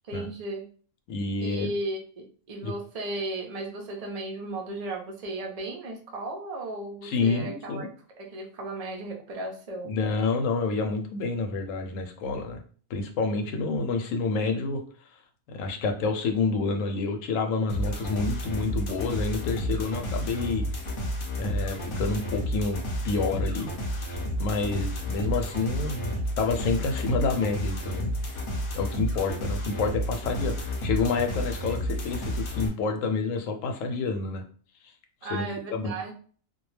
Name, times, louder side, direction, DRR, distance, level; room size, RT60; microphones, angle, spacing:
voice 1, 0.1-0.7 1.4-7.9 8.2-10.0 35.2-36.1, right 2 dB, 60° right, 1 dB, 0.4 m, -35 dB
voice 2, 1.1-1.7 2.6-2.7 7.0-7.9 9.8-12.6 12.9-14.8 15.5-20.7 21.4-22.8 23.0-23.7 24.4-28.1 28.7-34.4 35.3-35.9, left 4 dB, 75° left, 4 dB, 0.9 m, -28 dB
sound 1, 17.7-32.7, equal, 50° left, 0.8 m, -31 dB
2.3 x 2.2 x 3.1 m, 0.44 s
omnidirectional pair, 1.4 m